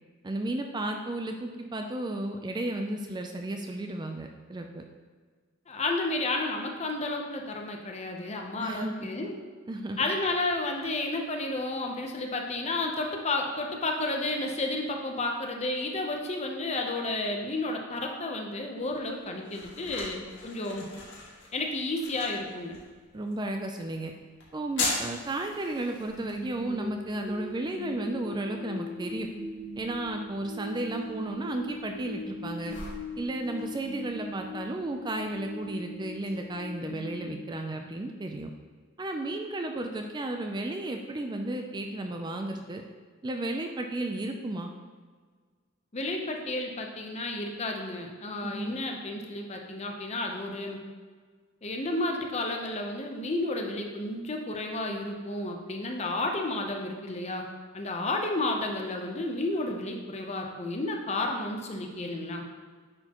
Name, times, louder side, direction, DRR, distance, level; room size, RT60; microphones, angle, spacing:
voice 1, 0.2-4.8 8.6-9.1 9.7-10.0 23.1-24.1 24.5-29.3 29.8-32.7 33.2-38.5 39.0-42.8 43.2-44.7 48.4-48.8, right 2 dB, 20° right, 4 dB, 0.4 m, -33 dB
voice 2, 5.7-9.3 10.0-20.9 21.5-22.8 45.9-50.8 51.6-57.5 57.7-62.4, left 2 dB, 30° left, 2 dB, 0.7 m, -32 dB
sound 1, 18.8-36.3, left 3 dB, 60° left, 1.7 m, -42 dB
sound 2, 26.1-38.2, left 1 dB, 50° right, 1.5 m, -40 dB
9.7 x 4.4 x 3.0 m, 1.5 s
head